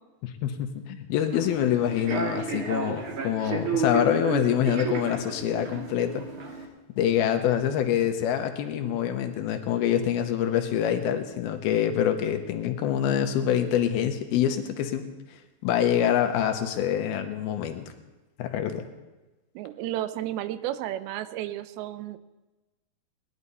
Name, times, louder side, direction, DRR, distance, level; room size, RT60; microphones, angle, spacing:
voice 1, 0.2-6.3 7.0-15.1 15.6-17.9 18.4-18.8, left 10 dB, 85° left, 6 dB, 2.8 m, -25 dB
Human voice / Subway metro underground, 1.2-6.6, right 4 dB, 50° right, 1.7 m, -32 dB
voice 2, 19.6-22.2, right 13 dB, 85° right, 13 dB, 2.5 m, -33 dB
19.5 x 11.0 x 4.1 m, 1.1 s
omnidirectional pair, 4.4 m